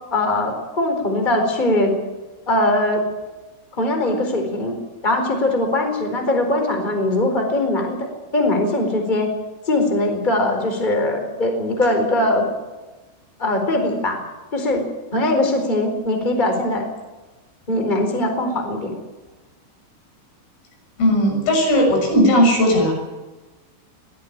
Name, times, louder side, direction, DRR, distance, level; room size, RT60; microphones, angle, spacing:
voice 1, 0.1-1.9 2.5-3.0 3.8-4.8 5.0-8.1 8.3-9.3 9.7-12.5 13.4-14.2 14.5-14.9 15.1-16.9 17.7-18.9, left 1 dB, 10° left, 4 dB, 3.8 m, -21 dB
voice 2, 21.0-22.9, equal, 90° left, 1 dB, 9.5 m, -16 dB
22.0 x 16.5 x 8.8 m, 1.2 s
omnidirectional pair, 5.6 m